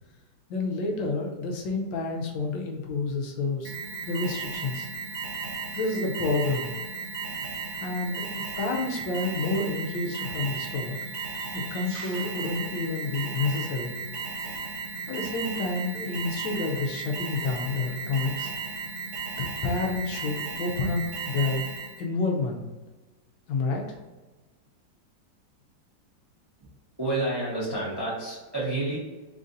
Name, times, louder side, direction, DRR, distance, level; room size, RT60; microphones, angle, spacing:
voice 1, 0.5-3.7 4.1-4.9 5.7-6.7 7.8-11.0 11.5-14.0 15.1-18.5 19.4-21.6 22.0-22.6 23.5-24.0, left 3 dB, 85° left, 1 dB, 1.5 m, -29 dB
Alarm, 3.6-22.0, right 4 dB, 80° right, 0.6 m, -35 dB
sound 1, 9.6-13.8, right 1 dB, 60° right, 2.0 m, -52 dB
voice 2, 27.0-29.0, right 2 dB, 20° right, -7 dB, 0.8 m, -29 dB
4.0 x 2.6 x 3.9 m, 1.2 s
omnidirectional pair, 2.0 m